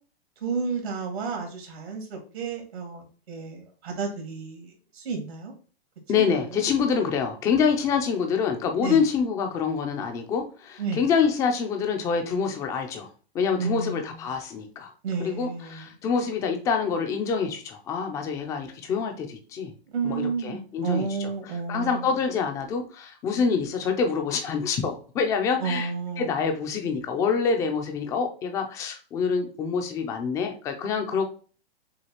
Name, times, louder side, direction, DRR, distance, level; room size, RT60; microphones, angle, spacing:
voice 1, 0.4-5.5 6.1-6.6 8.8-9.0 10.8-11.0 13.6-14.2 15.0-15.9 19.9-22.1 25.6-26.4, right 5 dB, 80° right, 3 dB, 2.0 m, -31 dB
voice 2, 6.1-14.9 15.2-19.7 20.0-21.3 21.7-25.9 26.2-31.2, left 6 dB, 10° left, 4 dB, 0.4 m, -26 dB
6.4 x 2.3 x 2.9 m, 0.38 s
hypercardioid pair, 150°, 32 cm